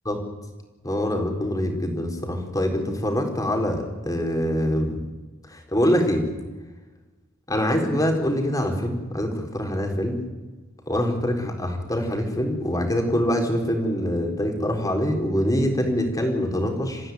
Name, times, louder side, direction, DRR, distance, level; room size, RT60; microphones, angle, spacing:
voice 1, 0.8-5.0 5.5-6.3 7.5-10.2 10.9-17.1, equal, 15° left, 3 dB, 4.3 m, -24 dB
29.0 x 15.5 x 9.5 m, 1.2 s
head